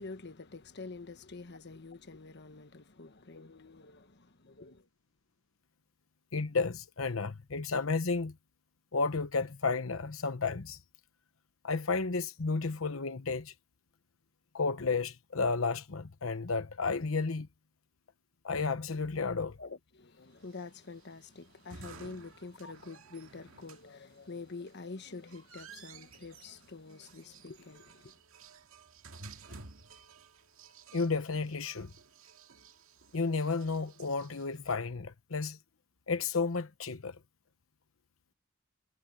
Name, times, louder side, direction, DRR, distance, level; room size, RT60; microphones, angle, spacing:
voice 1, 0.0-4.9 19.6-28.2, left 3 dB, 55° left, 1.2 m, -47 dB
voice 2, 6.3-8.3 8.9-10.8 11.6-13.5 14.5-17.5 18.4-19.6 22.6-22.7 30.9-31.9 33.1-35.6 36.1-37.2, left 4 dB, 85° left, 1.0 m, -32 dB
sound 1, 20.4-34.7, right 4 dB, 85° right, 2.1 m, -54 dB
head